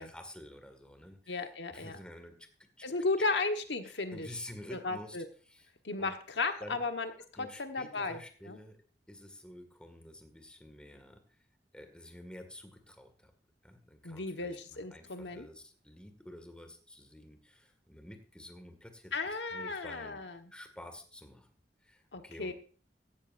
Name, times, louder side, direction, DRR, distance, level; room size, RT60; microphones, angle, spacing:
voice 1, 0.0-1.4 1.7-2.4 2.8-2.9 3.8-5.2 5.5-5.7 6.0-6.1 6.6-6.8 7.3-8.8 9.1-11.4 11.7-13.3 13.6-20.2 20.5-21.5 21.8-22.5, left 1 dB, 5° left, 6 dB, 1.9 m, -50 dB
voice 2, 1.3-2.0 2.8-4.3 4.7-5.2 5.8-7.1 7.4-8.2 8.5-8.6 14.0-15.5 19.1-20.5 22.1-22.5, left 3 dB, 90° left, 6 dB, 1.4 m, -35 dB
16.0 x 13.0 x 2.6 m, 0.39 s
head